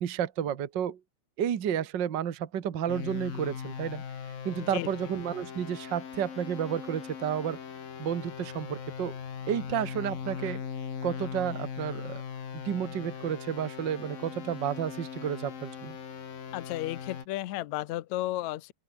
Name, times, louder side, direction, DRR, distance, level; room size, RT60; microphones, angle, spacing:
voice 1, 0.0-1.0 1.4-4.0 4.4-7.6 8.0-9.2 9.5-10.6 11.0-12.2 12.5-16.0, right 9 dB, 60° right, 1.2 m, -31 dB
sound 1, 2.9-17.2, left 7 dB, 90° left, 5.0 m, -39 dB
voice 2, 4.6-4.9 16.5-18.7, left 15 dB, 70° left, 2.0 m, -33 dB
open air
omnidirectional pair, 3.9 m